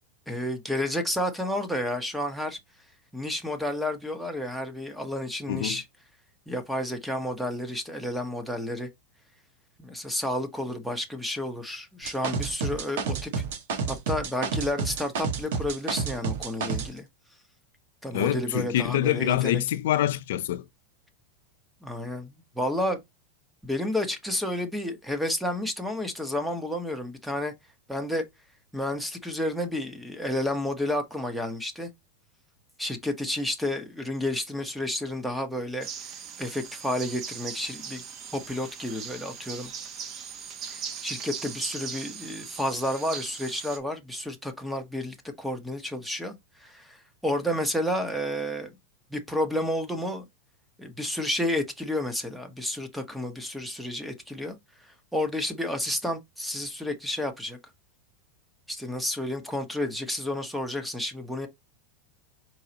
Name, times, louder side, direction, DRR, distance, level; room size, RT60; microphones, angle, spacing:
voice 1, 0.3-2.6 3.1-5.8 6.5-8.9 9.8-13.3 13.9-17.1 18.0-19.6 21.8-23.0 23.6-27.5 27.9-28.2 28.7-31.9 32.8-35.9 36.4-38.0 38.3-39.7 40.7-46.3 46.6-48.8 49.1-50.2 50.8-54.6 55.1-57.6 58.7-61.5, left 1 dB, ahead, 1.0 m, -31 dB
voice 2, 5.5-5.8 18.1-20.6, left 12 dB, 75° left, 0.5 m, -25 dB
sound 1, 12.0-16.9, right 5 dB, 75° right, 1.6 m, -30 dB
sound 2, 35.8-43.8, right 7 dB, 35° right, 1.1 m, -39 dB
4.7 x 3.9 x 2.9 m
supercardioid pair, 145°, 0 cm